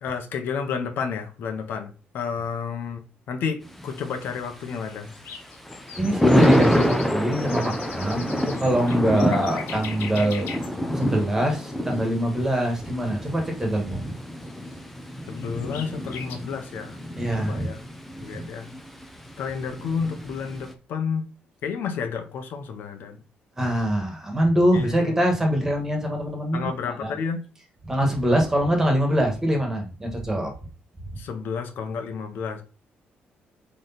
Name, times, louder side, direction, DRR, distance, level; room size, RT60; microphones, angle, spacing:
voice 1, 0.0-3.0 3.3-5.1 9.1-9.2 15.3-17.0 17.4-17.8 18.2-18.7 19.4-21.3 21.6-23.2 24.7-24.9 26.5-27.4 31.2-32.6, left 6 dB, 65° left, 6 dB, 1.2 m, -31 dB
Thunder, 3.6-20.7, equal, 5° left, 0.8 m, -27 dB
sound 1, 4.9-10.7 11.0-11.1 11.5-11.6 13.7-13.8 14.5-14.6 14.7-14.8 15.3-16.4, left 6 dB, 85° left, 1.8 m, -40 dB
voice 2, 6.0-10.5 10.9-14.1 17.2-17.7 18.2-18.5 23.6-26.7 27.0-27.1 27.8-30.5, equal, 10° right, 2 dB, 1.8 m, -24 dB
8.6 x 3.4 x 4.2 m, 0.36 s
cardioid pair, 165°, 4 cm